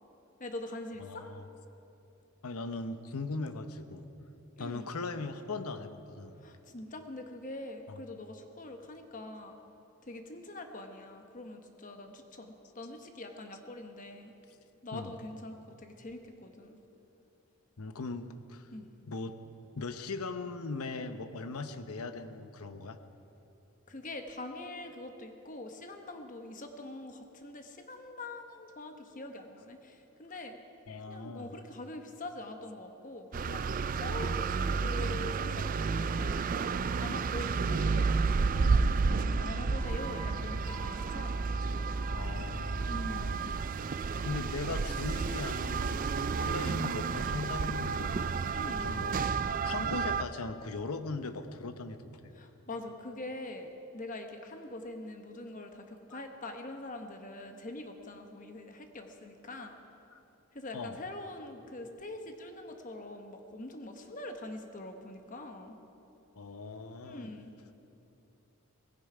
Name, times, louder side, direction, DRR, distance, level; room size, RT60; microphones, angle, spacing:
voice 1, 0.4-1.3 4.6-4.9 6.3-9.6 10.0-14.3 14.8-16.8 18.7-18.9 23.9-30.6 31.1-36.5 37.0-39.0 39.3-41.4 42.9-43.4 46.6-46.8 48.5-49.0 52.3-59.8 60.5-65.8 67.0-67.5, left 2 dB, 35° left, 5 dB, 1.0 m, -44 dB
voice 2, 1.0-1.4 2.4-4.1 4.6-6.3 14.9-15.1 17.8-18.7 19.1-19.3 19.8-23.0 30.9-31.6 37.1-37.3 42.1-43.4 44.2-49.1 49.5-52.2 56.1-56.2 60.1-60.2 60.7-61.0 66.4-67.3, left 3 dB, 80° left, 9 dB, 0.9 m, -39 dB
sound 1, 33.3-50.2, right 4 dB, 40° right, 0.3 m, -31 dB
sound 2, 39.7-44.9, right 1 dB, 60° right, 3.5 m, -47 dB
18.5 x 16.0 x 4.9 m, 2.9 s
head